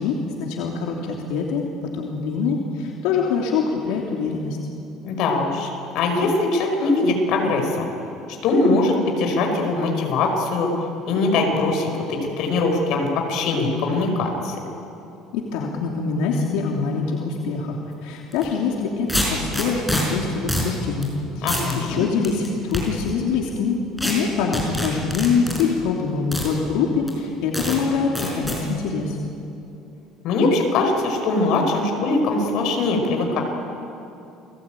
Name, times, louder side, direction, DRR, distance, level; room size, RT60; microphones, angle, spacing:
voice 1, 0.0-4.6 15.3-23.8 24.0-29.2, left 5 dB, 85° left, -1 dB, 3.0 m, -24 dB
voice 2, 5.0-5.7 5.9-7.9 8.4-10.7 11.1-14.5 21.4-22.0 30.2-33.4, left 3 dB, 55° left, 2 dB, 5.2 m, -21 dB
sound 1, 18.3-18.5 19.1-20.0 20.5-20.7 21.0-21.1 21.5-21.7 22.2-22.8 24.0-24.1 24.5-25.6 26.3-26.5 27.1-27.2 27.5-27.8 28.2-28.6, left 1 dB, ahead, 5.3 m, -25 dB
30.0 x 20.0 x 9.1 m, 2.8 s
cardioid pair, 170°, 0 cm